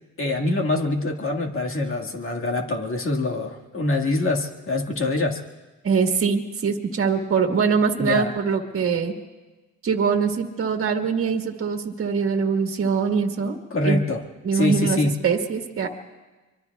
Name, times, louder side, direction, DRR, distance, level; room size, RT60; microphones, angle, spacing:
voice 1, 0.2-5.4 8.0-8.3 13.7-14.3 14.5-15.1, left 2 dB, 45° left, 1 dB, 1.9 m, -24 dB
voice 2, 5.8-9.1 9.8-13.6 13.8-14.0 14.4-15.9, right 5 dB, 45° right, 3 dB, 1.7 m, -23 dB
25.0 x 23.5 x 2.4 m, 1.2 s
cardioid pair, 90°, 30 cm